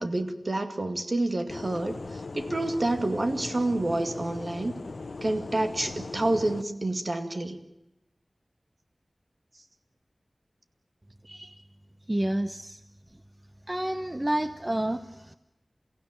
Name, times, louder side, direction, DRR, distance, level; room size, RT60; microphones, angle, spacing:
voice 1, 0.0-4.8 5.2-7.6, right 2 dB, 55° right, 7 dB, 2.2 m, -28 dB
sound 1, 1.5-6.6, left 3 dB, 90° left, 1.0 m, -39 dB
voice 2, 11.2-11.6 12.1-12.8 13.7-15.3, right 1 dB, 20° right, 10 dB, 0.9 m, -30 dB
29.5 x 16.0 x 9.0 m, 0.89 s
wide cardioid pair, 70°, 0 cm